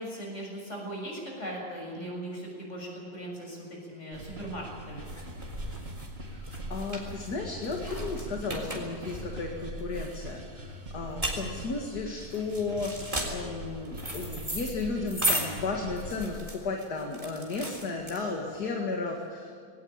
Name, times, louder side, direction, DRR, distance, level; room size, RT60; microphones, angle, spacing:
voice 1, 0.0-5.1, right 1 dB, 35° left, -1 dB, 7.1 m, -39 dB
sound 1, 4.1-16.3, right 1 dB, 35° right, 2.0 m, -42 dB
sound 2, 4.2-18.6, right 1 dB, 15° right, 3.7 m, -36 dB
voice 2, 6.3-19.5, left 3 dB, 55° left, 1 dB, 2.4 m, -34 dB
20.5 x 18.5 x 8.9 m, 2.3 s
omnidirectional pair, 2.0 m